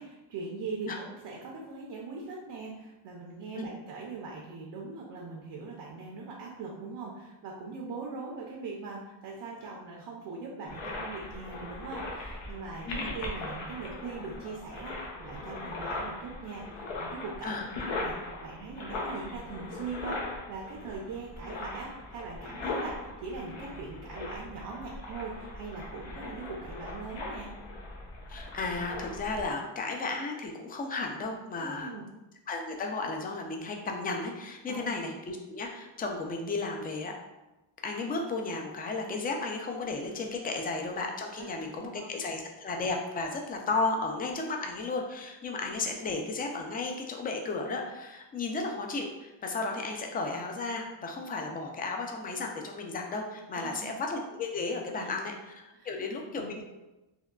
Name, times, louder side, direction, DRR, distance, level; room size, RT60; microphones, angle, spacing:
voice 1, 0.0-27.5 31.6-32.0 34.7-34.8 41.4-41.5 41.8-42.1 53.5-53.9 55.0-55.1 55.7-56.0 56.4-56.5, right 4 dB, 65° right, -1 dB, 0.6 m, -41 dB
sound 1, 10.7-29.5, left 2 dB, 80° left, 0.8 m, -39 dB
voice 2, 28.3-31.9 32.5-37.1 37.8-56.6, left 3 dB, 20° left, 2 dB, 0.3 m, -34 dB
3.6 x 2.2 x 2.3 m, 1.0 s
cardioid pair, 100°, 47 cm